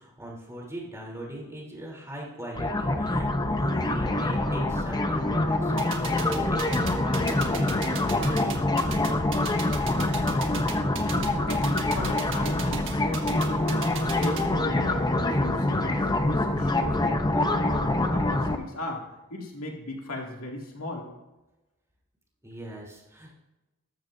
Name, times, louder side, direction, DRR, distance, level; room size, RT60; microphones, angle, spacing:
voice 1, 0.0-8.9 22.4-23.3, right 1 dB, 15° right, -3 dB, 3.3 m, -40 dB
sound 1, 2.5-18.6, left 2 dB, 20° left, 0.8 m, -25 dB
sound 2, 5.8-14.4, right 9 dB, 60° right, 1.5 m, -36 dB
voice 2, 10.9-17.0 17.3-19.0 19.3-21.1, left 1 dB, 75° left, -1 dB, 2.3 m, -37 dB
14.0 x 13.0 x 2.7 m, 1.0 s
head